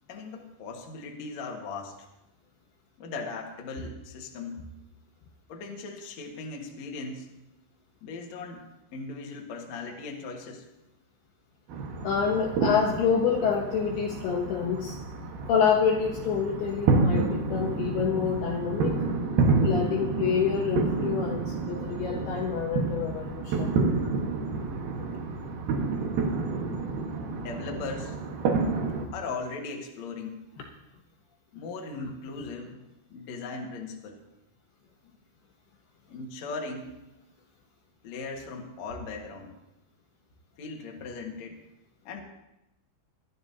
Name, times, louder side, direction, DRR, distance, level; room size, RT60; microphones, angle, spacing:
voice 1, 0.1-2.1 3.0-4.6 5.5-7.4 8.0-10.7 27.3-28.2 29.1-30.4 31.5-34.2 36.1-37.0 38.0-39.5 40.6-41.6 42.0-42.2, left 3 dB, 55° left, 1 dB, 2.1 m, -38 dB
sound 1, 11.7-29.1, right 3 dB, 60° right, 2.8 m, -29 dB
voice 2, 12.0-15.0 15.5-19.0 19.5-23.7, left 7 dB, 70° left, 1 dB, 2.6 m, -27 dB
21.0 x 12.0 x 2.8 m, 0.91 s
omnidirectional pair, 5.5 m